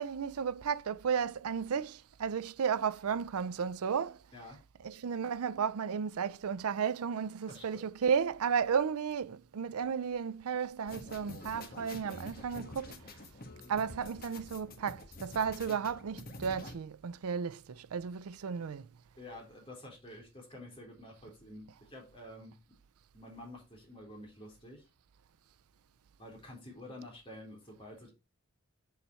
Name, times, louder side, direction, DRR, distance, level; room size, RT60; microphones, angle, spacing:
voice 1, 0.0-4.2 4.8-13.1 13.7-18.9, right 6 dB, 85° right, 0.5 m, -33 dB
voice 2, 7.5-7.8 19.2-22.6 23.1-24.8 26.2-28.1, left 1 dB, 25° left, 3.8 m, -49 dB
sound 1, 10.9-16.7, left 2 dB, 45° left, 1.4 m, -48 dB
7.2 x 6.8 x 4.3 m
head